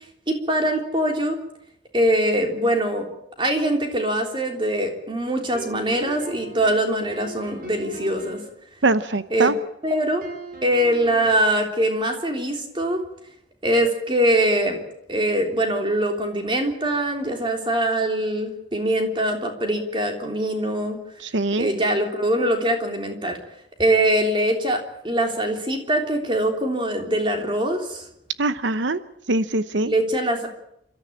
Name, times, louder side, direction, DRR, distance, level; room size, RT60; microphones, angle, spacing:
voice 1, 0.3-1.4 1.9-3.1 3.4-8.4 9.3-9.5 9.8-10.3 10.6-13.0 13.6-14.8 15.1-21.0 21.6-23.4 23.8-28.0 29.9-30.5, right 1 dB, 25° right, 3 dB, 3.5 m, -23 dB
sound 1, 5.5-8.5 10.2-11.6, right 2 dB, 50° right, 5.1 m, -39 dB
voice 2, 8.8-9.6 21.2-21.7 28.4-29.0 29.3-29.9, right 2 dB, 75° right, 13 dB, 0.9 m, -22 dB
28.5 x 13.5 x 8.8 m, 0.78 s
head